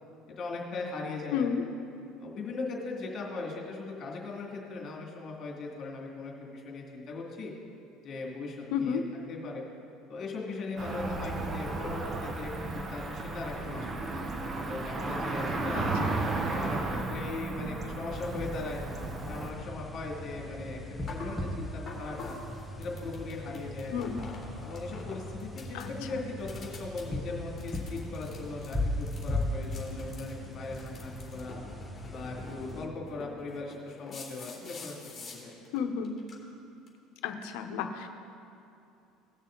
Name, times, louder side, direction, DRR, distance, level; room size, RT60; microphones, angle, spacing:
voice 1, 0.3-1.5 2.2-7.5 8.0-9.0 9.3-9.6 10.1-14.1 14.6-15.9 16.3-18.8 19.2-22.4 22.8-23.9 24.6-31.6 32.1-35.5, left 3 dB, 45° left, -1 dB, 2.6 m, -39 dB
voice 2, 1.3-1.6 8.7-9.0 15.7-16.2 23.9-24.2 25.7-26.2 35.7-36.1 37.2-38.1, left 7 dB, 80° left, 6 dB, 1.0 m, -32 dB
Cricket / Motor vehicle (road), 10.8-19.5, right 2 dB, 30° right, 1.0 m, -34 dB
sound 1, 18.1-32.9, left 1 dB, ahead, 1.2 m, -38 dB
sound 2, 21.1-21.3 21.9-25.1 25.4-26.0 26.4-27.0 27.6-35.8 36.0-36.3 36.9-37.0, left 3 dB, 25° left, 2.9 m, -46 dB
18.5 x 6.4 x 4.0 m, 2.7 s
supercardioid pair, 115°, 0 cm